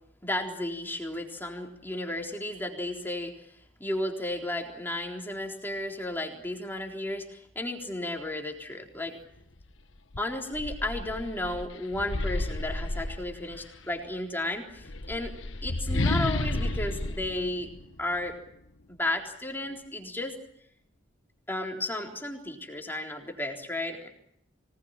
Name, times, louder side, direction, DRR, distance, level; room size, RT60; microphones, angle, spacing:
voice 1, 0.2-3.3 3.8-9.1 10.2-15.3 15.6-17.7 18.0-18.4 19.0-20.3 21.5-24.1, left 1 dB, 10° left, 1 dB, 3.8 m, -33 dB
sound 1, 9.6-9.7 10.1-13.8 14.7-18.3, left 2 dB, 85° left, 1.4 m, -32 dB
25.5 x 19.5 x 8.9 m, 0.71 s
head